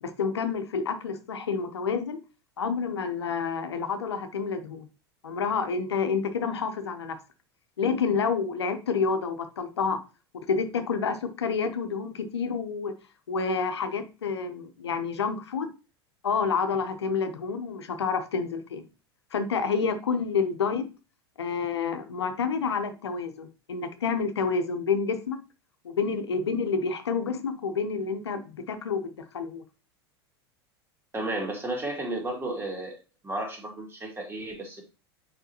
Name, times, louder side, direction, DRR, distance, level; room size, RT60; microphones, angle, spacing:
voice 1, 0.0-2.2 2.6-4.9 5.2-7.2 7.8-10.0 10.3-12.9 13.3-15.7 16.2-18.8 19.3-20.9 21.4-25.4 25.8-29.6, left 5 dB, 85° left, 0.9 m, -29 dB
voice 2, 31.1-33.0 33.2-34.8, right 2 dB, 15° right, 2.5 m, -33 dB
6.8 x 5.1 x 2.9 m
hypercardioid pair, 85°, 14 cm